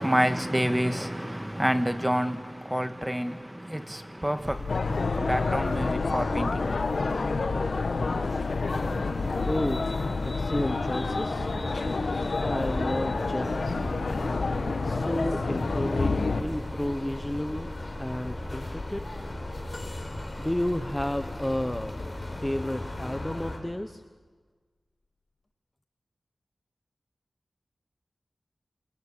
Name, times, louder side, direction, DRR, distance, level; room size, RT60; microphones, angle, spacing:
voice 1, 0.0-7.0, equal, 5° right, 1.6 m, -28 dB
sound 1, 4.4-23.6, left 2 dB, 30° left, 5.2 m, -35 dB
sound 2, 4.7-16.4, left 3 dB, 70° left, 1.6 m, -29 dB
voice 2, 9.4-9.9 10.2-11.5 12.4-13.8 14.6-17.7 18.0-19.0 20.4-22.0 22.4-24.0, left 1 dB, 10° left, 0.9 m, -31 dB
sound 3, 19.7-21.1 23.5-23.7 25.0-25.1, left 2 dB, 45° left, 1.9 m, -50 dB
28.5 x 21.5 x 8.3 m
wide cardioid pair, 95°, 0 cm